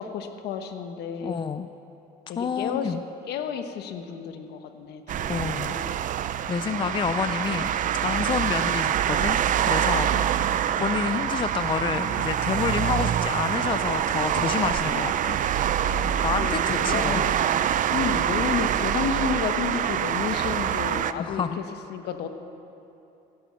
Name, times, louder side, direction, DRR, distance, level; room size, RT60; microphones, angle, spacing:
voice 1, 0.0-1.4 2.3-3.0 3.3-5.9 10.1-10.5 15.9-17.6 17.9-21.4 21.9-22.3, left 7 dB, 75° left, 7 dB, 1.1 m, -32 dB
voice 2, 1.2-1.7 2.4-3.0 5.3-5.7 6.5-7.7 8.0-9.4 9.6-10.5 10.8-15.4 16.2-17.3 21.2-21.6, left 6 dB, 30° left, 10 dB, 0.4 m, -29 dB
sound 1, 5.1-21.1, right 10 dB, 50° right, 0.5 m, -25 dB
16.0 x 11.0 x 6.3 m, 2.8 s
cardioid pair, 110°, 17 cm